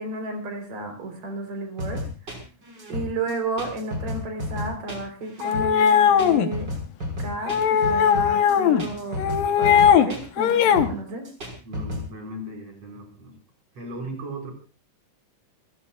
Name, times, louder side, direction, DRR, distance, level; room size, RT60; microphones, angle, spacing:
voice 1, 0.0-2.1 2.9-6.7 7.2-9.2 9.6-11.3, right 2 dB, 75° right, 5 dB, 5.6 m, -32 dB
sound 1, 1.8-12.1, left 1 dB, 30° right, 5.9 m, -32 dB
sound 2, 5.4-6.5 7.5-8.8 9.2-10.1 10.4-10.9, left 8 dB, 80° left, 2.9 m, -19 dB
voice 2, 11.6-13.4 13.7-14.5, right 1 dB, 50° right, 2 dB, 6.3 m, -37 dB
29.0 x 15.5 x 2.5 m, 0.33 s
omnidirectional pair, 3.9 m